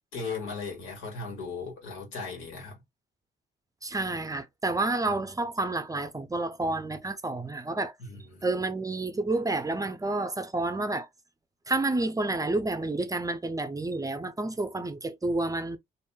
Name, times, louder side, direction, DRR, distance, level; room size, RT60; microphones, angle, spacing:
voice 1, 0.1-2.8 8.0-8.4, left 4 dB, 90° left, 1.6 m, -37 dB
voice 2, 3.8-8.0 8.4-11.1 11.7-15.8, right 2 dB, 15° right, 0.5 m, -29 dB
3.0 x 2.6 x 2.2 m
cardioid pair, 90°, 20 cm